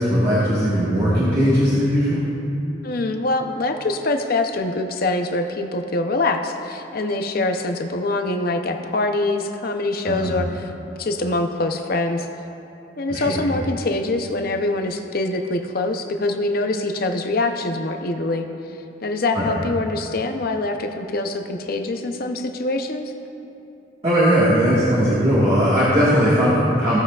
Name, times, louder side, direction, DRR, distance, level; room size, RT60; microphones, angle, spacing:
voice 1, 0.0-2.2 10.0-10.3 13.1-13.4 19.3-19.5 24.0-27.0, equal, 30° right, -9 dB, 1.6 m, -18 dB
voice 2, 2.8-10.7 11.0-12.3 13.0-18.5 19.0-23.1, left 2 dB, 50° left, 5 dB, 0.6 m, -24 dB
17.0 x 7.7 x 2.4 m, 2.8 s
head